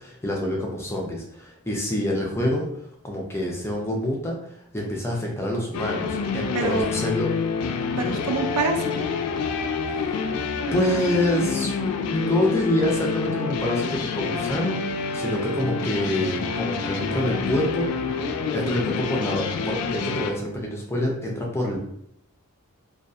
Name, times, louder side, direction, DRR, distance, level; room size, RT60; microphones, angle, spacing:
voice 1, 0.0-4.4 4.7-7.3 9.9-10.1 10.7-11.7 12.1-21.8, left 1 dB, 10° left, -1 dB, 0.4 m, -26 dB
sound 1, 5.7-20.3, left 5 dB, 80° left, 0.3 m, -27 dB
voice 2, 6.5-6.9 8.0-9.1, right 3 dB, 90° right, 4 dB, 0.4 m, -26 dB
2.6 x 2.2 x 2.3 m, 0.73 s
head